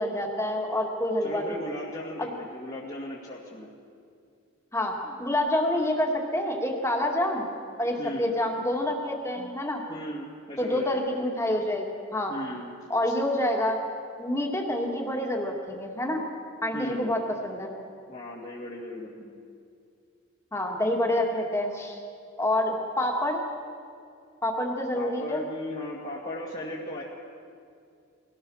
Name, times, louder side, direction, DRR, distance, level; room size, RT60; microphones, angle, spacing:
voice 1, 0.0-1.6 2.2-2.3 4.7-7.5 7.8-9.8 10.6-11.9 12.1-12.3 12.9-13.8 14.2-16.2 16.6-17.7 20.5-22.0 22.4-23.4 24.4-25.4, left 1 dB, 15° left, 1 dB, 2.3 m, -27 dB
voice 2, 1.2-3.7 8.0-8.3 9.4-9.5 9.9-11.0 12.3-12.7 13.1-13.2 16.7-17.1 18.1-19.4 24.9-27.0, left 1 dB, 35° left, -6 dB, 2.4 m, -37 dB
22.5 x 17.5 x 6.5 m, 2.4 s
head